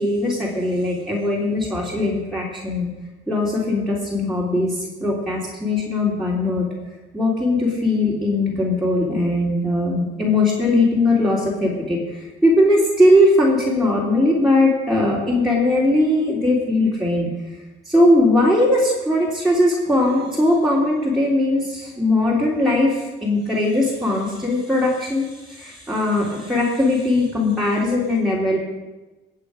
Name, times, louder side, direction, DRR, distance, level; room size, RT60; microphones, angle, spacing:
voice 1, 0.0-2.9 3.3-6.7 7.1-17.3 17.9-28.6, left 1 dB, ahead, -7 dB, 3.6 m, -19 dB
17.5 x 8.3 x 5.2 m, 1.1 s
cardioid pair, 90°, 20 cm